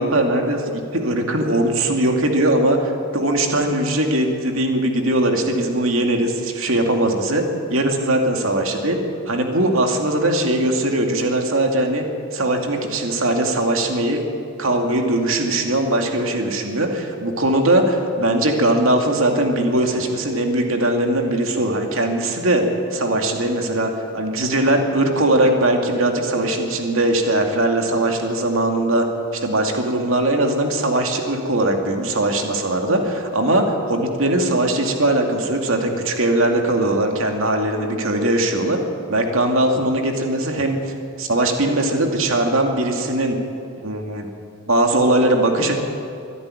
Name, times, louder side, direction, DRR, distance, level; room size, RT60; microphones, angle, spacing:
voice 1, 0.0-12.0 12.3-14.2 14.6-22.6 22.9-29.0 29.4-38.8 39.1-40.8 41.2-43.4 43.8-44.3 44.7-45.7, right 1 dB, 65° right, 3 dB, 2.5 m, -20 dB
24.0 x 11.0 x 10.0 m, 2.6 s
head